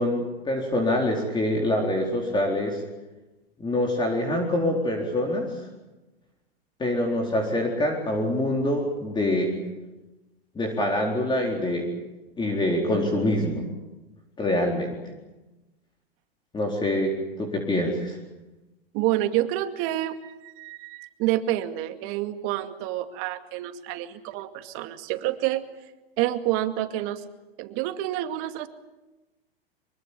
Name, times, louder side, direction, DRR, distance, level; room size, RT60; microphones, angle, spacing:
voice 1, 0.0-2.8 3.6-5.6 6.8-9.5 10.5-11.9 12.4-13.7 14.4-15.0 16.5-18.2, left 1 dB, 15° left, 1 dB, 4.2 m, -25 dB
voice 2, 18.9-25.7 26.2-27.2 27.6-28.7, right 14 dB, 45° right, 8 dB, 2.3 m, -28 dB
24.5 x 23.5 x 8.6 m, 1.1 s
hypercardioid pair, 115°, 30 cm